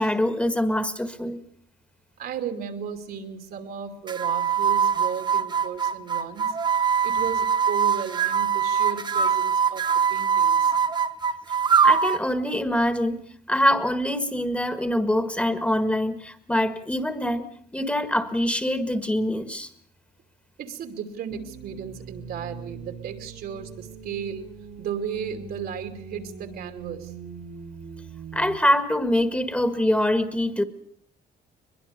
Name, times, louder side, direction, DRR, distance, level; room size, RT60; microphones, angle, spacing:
voice 1, 0.0-1.4 11.8-13.2 13.5-17.5 17.7-19.7 28.3-30.6, left 1 dB, 5° left, 10 dB, 1.8 m, -24 dB
voice 2, 2.2-10.7 20.6-24.5 24.8-27.1, right 7 dB, 65° right, 7 dB, 2.8 m, -35 dB
sound 1, 4.1-12.3, right 7 dB, 25° right, 1.0 m, -22 dB
sound 2, 21.3-28.6, right 5 dB, 45° right, 2.1 m, -41 dB
22.5 x 22.0 x 6.8 m, 0.62 s
cardioid pair, 110°, 17 cm